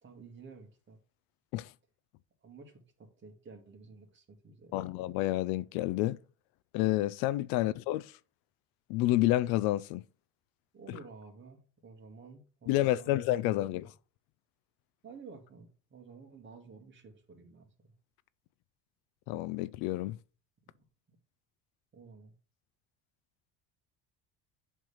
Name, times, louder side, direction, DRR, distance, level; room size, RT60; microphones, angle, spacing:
voice 1, 0.0-1.0 2.4-5.0 7.5-7.7 10.7-13.9 15.0-17.9 21.1-21.2 21.9-22.3, right 4 dB, 30° right, 1.9 m, -52 dB
voice 2, 4.7-6.2 6.7-8.1 8.9-10.0 12.7-13.9 19.3-20.2, left 15 dB, 75° left, 0.5 m, -29 dB
7.7 x 3.4 x 5.6 m
supercardioid pair, 110°, 36 cm